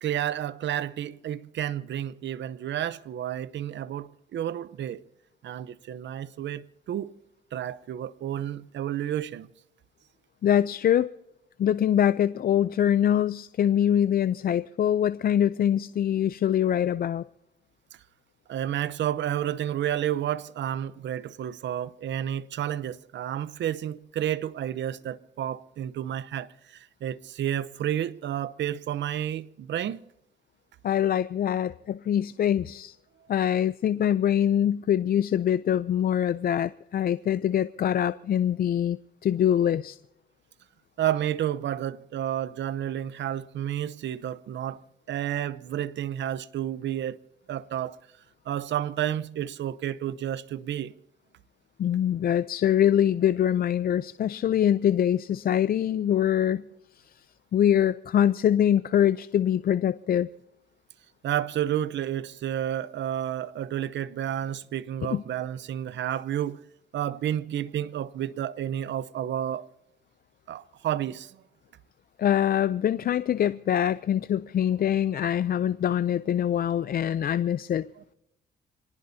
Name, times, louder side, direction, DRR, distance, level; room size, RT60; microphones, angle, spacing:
voice 1, 0.0-5.0 5.4-7.1 7.5-9.5 18.5-30.0 41.0-44.8 45.1-47.2 47.5-48.0 48.5-50.9 61.2-66.6 66.9-69.7 70.5-71.4, right 11 dB, 65° right, 0.8 m, -31 dB
voice 2, 10.4-11.1 11.6-17.2 30.8-33.0 33.3-40.0 51.8-56.6 57.1-57.2 57.5-60.3 65.1-65.2 72.2-77.9, left 10 dB, 50° left, 0.5 m, -24 dB
26.0 x 19.0 x 2.8 m
cardioid pair, 90°, 20 cm